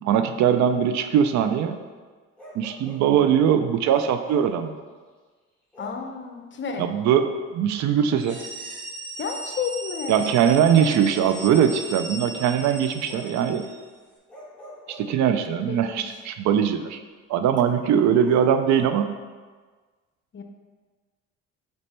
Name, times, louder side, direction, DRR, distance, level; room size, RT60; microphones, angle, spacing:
voice 1, 0.0-1.8 2.5-4.7 6.8-8.4 10.1-13.7 14.9-17.0 17.3-19.1, right 8 dB, 70° right, 8 dB, 0.5 m, -21 dB
Bark, 2.4-3.1 3.9-4.6 5.7-6.1 7.8-7.9 10.7-11.7 12.3-13.4 14.3-15.6 18.2-19.0, equal, 5° left, 1.6 m, -44 dB
voice 2, 3.0-3.3 5.8-6.9 9.2-10.9 15.5-16.1 20.3-20.4, left 5 dB, 40° left, 5 dB, 0.7 m, -33 dB
sound 1, 8.1-13.8, right 2 dB, 40° right, 1.7 m, -37 dB
5.2 x 4.1 x 4.3 m, 1.4 s
cardioid pair, 90°, 30 cm